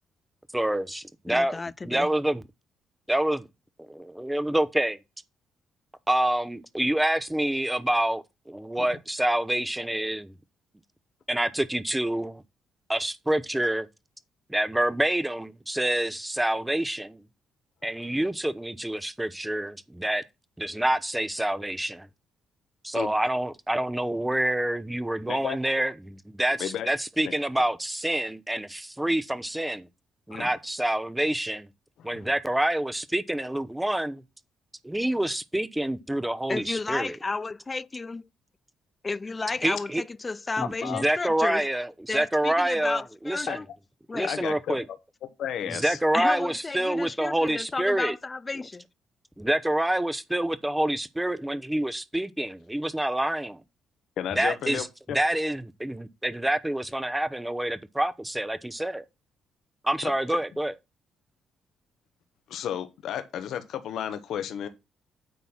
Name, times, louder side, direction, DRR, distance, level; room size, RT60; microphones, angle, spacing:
voice 1, 0.5-1.6 1.8-2.4 3.1-3.5 3.8-5.0 6.1-10.3 11.3-12.4 12.9-13.9 14.5-17.2 17.8-20.2 20.6-22.1 22.8-29.9 30.3-31.7 32.0-34.2 34.8-37.2 39.6-40.0 40.6-43.6 44.1-44.8 45.7-48.1 49.4-53.6 54.3-59.0 59.8-60.7, right 1 dB, 10° right, 0.8 m, -27 dB
voice 2, 1.3-2.1 36.5-38.3 39.0-41.6 42.1-43.7 44.1-44.3 46.1-48.9, left 3 dB, 25° left, 0.4 m, -32 dB
voice 3, 32.0-32.3 40.8-41.0 43.5-43.6 44.2-45.0 45.4-46.0 54.2-55.2 62.5-64.7, left 9 dB, 75° left, 1.1 m, -33 dB
9.3 x 4.0 x 6.0 m
cardioid pair, 90°, 0 cm